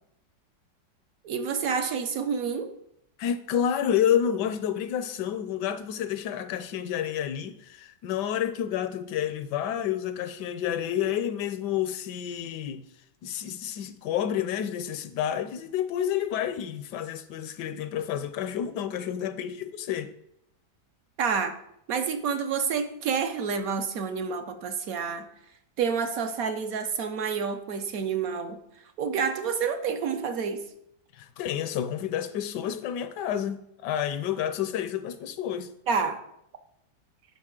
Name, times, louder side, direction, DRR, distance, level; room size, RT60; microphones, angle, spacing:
voice 1, 1.2-2.7 21.2-21.6 21.9-25.3 25.8-28.6 29.0-30.6 35.9-36.2, right 6 dB, 65° right, 1.0 m, -28 dB
voice 2, 3.2-12.9 13.2-20.1 31.2-35.7, left 9 dB, 75° left, 1.1 m, -29 dB
11.0 x 5.2 x 3.7 m
omnidirectional pair, 1.9 m